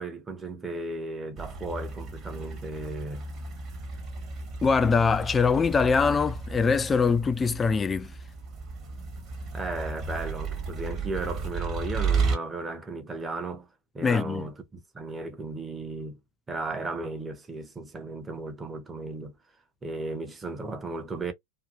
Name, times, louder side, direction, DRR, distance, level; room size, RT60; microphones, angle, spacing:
voice 1, 0.0-3.2 9.5-13.7 13.9-16.2 16.5-19.4 19.8-21.3, right 3 dB, 15° right, 0.7 m, -35 dB
sound 1, 1.4-12.4, right 4 dB, 30° right, 1.2 m, -33 dB
voice 2, 4.6-8.1 14.0-14.4, left 5 dB, 15° left, 0.3 m, -23 dB
2.7 x 2.6 x 2.4 m
figure-of-eight pair, 90°, 0 cm